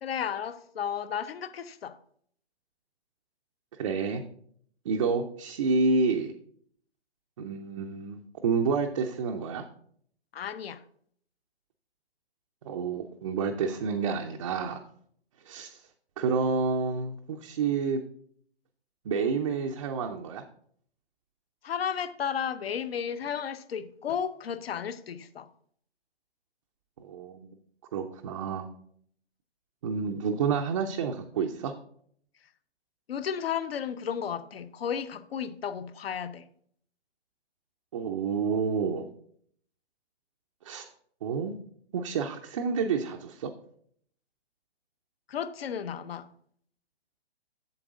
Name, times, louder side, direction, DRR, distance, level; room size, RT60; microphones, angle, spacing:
voice 1, 0.0-2.0 10.3-10.8 21.6-25.5 33.1-36.4 45.3-46.3, left 8 dB, 65° left, 0.7 m, -33 dB
voice 2, 3.8-4.2 4.9-6.3 7.4-9.6 12.6-14.8 15.5-15.8 16.2-18.0 19.1-20.4 27.0-27.5 27.9-28.7 29.8-31.7 37.9-39.1 40.6-40.9 41.2-41.5 41.9-43.5, right 5 dB, 30° right, 0.5 m, -29 dB
7.9 x 7.2 x 3.6 m
hypercardioid pair, 140°, 33 cm